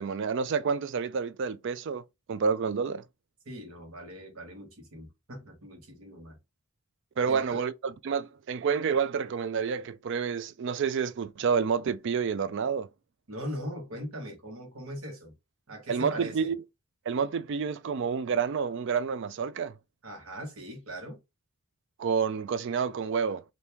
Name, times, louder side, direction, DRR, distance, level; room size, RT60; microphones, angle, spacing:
voice 1, 0.0-2.0 2.3-3.0 7.2-12.9 15.9-16.6 17.1-19.7 22.0-23.4, right 6 dB, 55° right, 0.4 m, -29 dB
voice 2, 3.4-6.4 7.2-7.6 13.3-15.3 15.7-16.5 20.0-21.2, equal, 75° right, 1.3 m, -40 dB
3.4 x 2.7 x 2.8 m
head